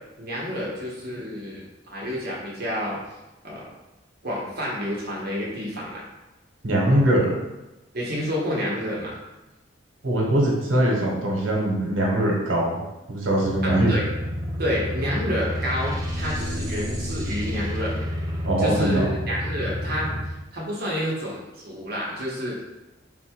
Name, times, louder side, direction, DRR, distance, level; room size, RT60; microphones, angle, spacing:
voice 1, 0.2-3.0 3.4-3.7 4.2-6.0 7.9-9.2 13.6-14.0 14.6-17.9 18.6-22.6, equal, 55° right, -4 dB, 1.0 m, -29 dB
voice 2, 6.6-7.3 10.0-12.7 13.1-13.9 18.4-19.1, right 1 dB, 85° right, -2 dB, 1.2 m, -21 dB
sound 1, 13.4-20.2, equal, 20° right, 0.7 m, -30 dB
4.1 x 2.3 x 4.4 m, 1.0 s
head